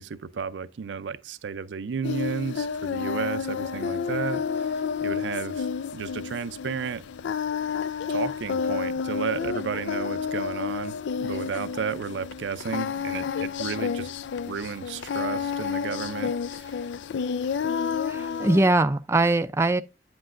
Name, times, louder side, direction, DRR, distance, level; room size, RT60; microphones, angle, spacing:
voice 1, 0.0-5.7 5.9-7.1 8.1-14.1 14.5-16.7, right 6 dB, 85° right, 0.4 m, -33 dB
Singing, 2.0-18.7, left 6 dB, 80° left, 0.4 m, -30 dB
voice 2, 18.1-19.8, right 2 dB, 15° right, 0.3 m, -22 dB
8.6 x 7.8 x 2.5 m
head